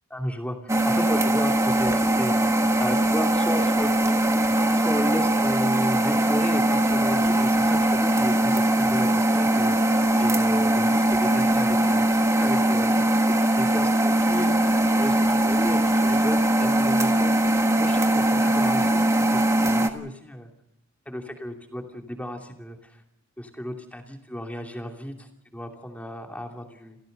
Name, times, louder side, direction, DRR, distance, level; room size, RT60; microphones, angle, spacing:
voice 1, 0.1-2.5 2.8-4.2 4.7-12.0 12.4-13.0 13.6-17.3 17.8-19.0 19.3-20.5 21.1-23.0 23.4-27.0, equal, 5° left, 3 dB, 2.8 m, -34 dB
sound 1, 0.7-19.9, right 1 dB, 15° right, 1.5 m, -21 dB
29.0 x 16.0 x 6.7 m, 0.85 s
head